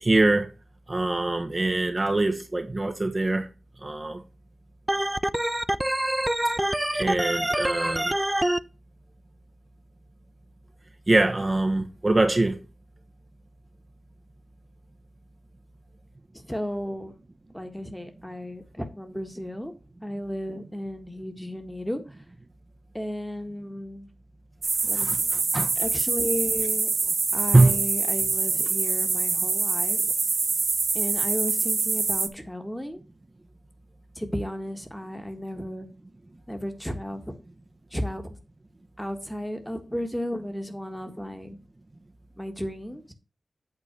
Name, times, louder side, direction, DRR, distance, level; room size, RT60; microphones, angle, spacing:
voice 1, 0.0-0.5 0.9-3.5 3.8-4.2 6.9-8.1 11.1-12.6 24.9-25.7 27.5-27.8, right 2 dB, 30° right, 1.0 m, -23 dB
Organ, 4.9-8.6, right 1 dB, 10° right, 0.4 m, -25 dB
voice 2, 16.5-17.2 17.5-19.7 20.0-22.0 22.9-24.1 24.9-25.3 25.8-26.9 27.3-30.1 30.9-33.0 34.2-35.9 36.5-37.3 37.9-38.4 39.0-41.6 42.4-43.1, equal, 5° left, 1.6 m, -34 dB
sound 1, 24.6-32.3, right 4 dB, 65° right, 0.9 m, -25 dB
8.7 x 4.0 x 6.9 m
wide cardioid pair, 95°, 0 cm